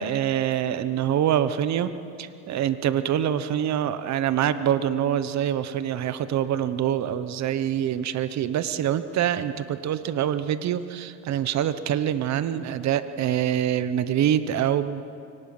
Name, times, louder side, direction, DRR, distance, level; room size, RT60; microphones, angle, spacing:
voice 1, 0.0-1.9 2.2-15.0, right 10 dB, 55° right, 13 dB, 1.0 m, -25 dB
23.5 x 18.5 x 6.0 m, 2.5 s
cardioid pair, 105°, 33 cm